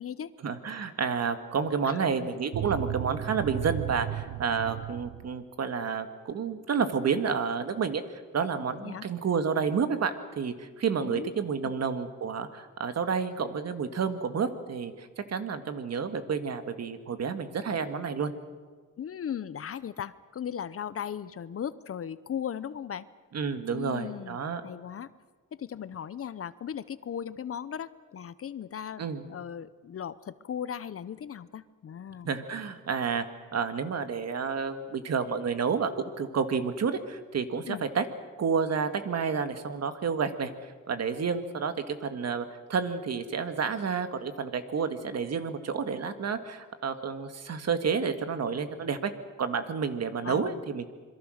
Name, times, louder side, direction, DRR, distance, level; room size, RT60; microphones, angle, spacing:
voice 1, 0.4-18.3 23.3-24.6 29.0-29.3 32.2-33.2 33.5-38.1 38.4-49.1 49.4-50.9, right 6 dB, 50° right, 9 dB, 1.8 m, -30 dB
voice 2, 1.8-2.3 8.8-9.1 11.0-11.3 11.6-11.8 19.0-23.1 23.7-24.4 24.6-25.1 25.5-29.0 29.3-32.3 37.7-37.8 50.2-50.6, left 8 dB, 45° left, 16 dB, 0.7 m, -37 dB
sound 1, 2.5-5.4, right 14 dB, 75° right, 0.9 m, -34 dB
27.0 x 22.5 x 6.5 m, 1.5 s
cardioid pair, 125°, 33 cm